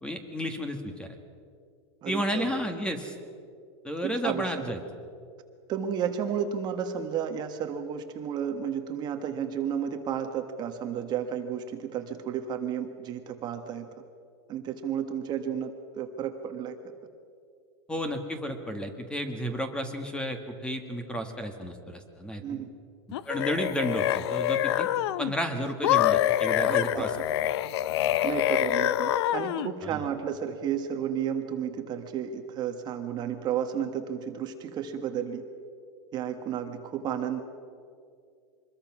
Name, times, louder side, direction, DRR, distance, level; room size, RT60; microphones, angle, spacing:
voice 1, 0.0-1.1 2.0-3.1 3.8-4.8 17.9-22.6 23.2-24.9 25.2-27.1 29.8-30.0, equal, 5° left, 6 dB, 1.7 m, -32 dB
voice 2, 2.0-2.5 4.0-4.5 5.7-13.9 14.5-16.8 22.4-22.7 26.7-27.3 28.2-35.4 36.1-37.4, right 8 dB, 30° right, 6 dB, 1.4 m, -32 dB
sound 1, 23.1-25.3 25.8-29.7, left 13 dB, 65° left, 0.7 m, -26 dB
24.5 x 21.5 x 6.1 m, 2.3 s
supercardioid pair, 150°, 14 cm